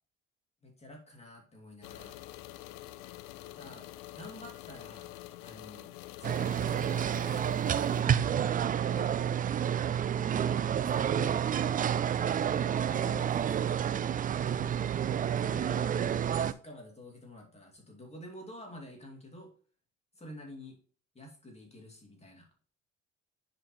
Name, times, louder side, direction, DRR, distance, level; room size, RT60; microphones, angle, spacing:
voice 1, 0.6-2.2 3.6-5.1 5.4-7.1 7.7-9.2 10.4-11.4 12.3-13.7 15.4-19.5 20.1-20.8 21.1-22.5, left 1 dB, 20° left, 0 dB, 2.5 m, -49 dB
sound 1, 1.8-8.0, left 16 dB, 65° left, 0.6 m, -47 dB
sound 2, 6.2-16.5, right 9 dB, 25° right, 0.4 m, -29 dB
9.6 x 4.5 x 3.2 m, 0.43 s
hypercardioid pair, 60°, 35 cm